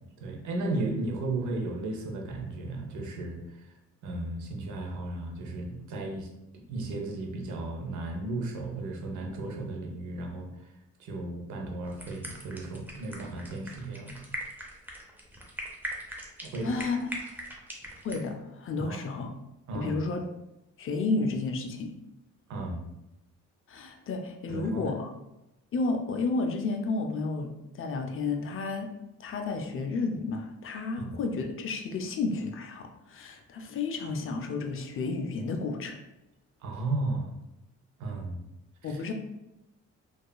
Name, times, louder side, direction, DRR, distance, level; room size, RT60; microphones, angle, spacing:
voice 1, 0.2-3.7 4.0-6.3 6.5-10.5 11.0-14.2 16.4-16.8 18.8-19.0 19.7-20.0 22.5-22.8 24.5-24.9 31.0-31.1 36.6-37.3 38.0-38.4 38.8-39.0, right 2 dB, 75° right, 1 dB, 0.6 m, -34 dB
sound 1, 11.8-18.2, equal, 5° right, 0.5 m, -41 dB
voice 2, 16.6-17.0 18.0-19.3 19.7-20.2 20.8-21.9 23.7-25.1 25.7-28.9 29.2-36.0 38.8-39.1, left 3 dB, 45° left, 4 dB, 0.4 m, -31 dB
2.8 x 2.3 x 2.2 m, 0.91 s
cardioid pair, 90°, 30 cm